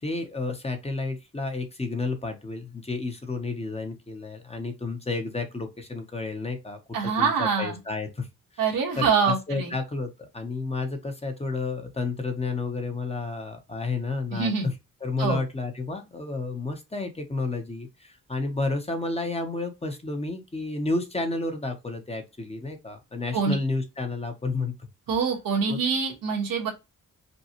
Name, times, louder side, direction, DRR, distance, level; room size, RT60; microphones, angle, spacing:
voice 1, 0.0-8.3 8.5-8.6 9.0-14.7 15.0-24.7 25.7-25.8, left 3 dB, 20° left, 0.8 m, -31 dB
voice 2, 6.9-7.8 8.6-9.7 14.3-14.7 15.2-15.4 23.3-23.5 25.1-26.7, right 5 dB, 90° right, 1.5 m, -25 dB
5.2 x 2.3 x 2.9 m
wide cardioid pair, 125°, 33 cm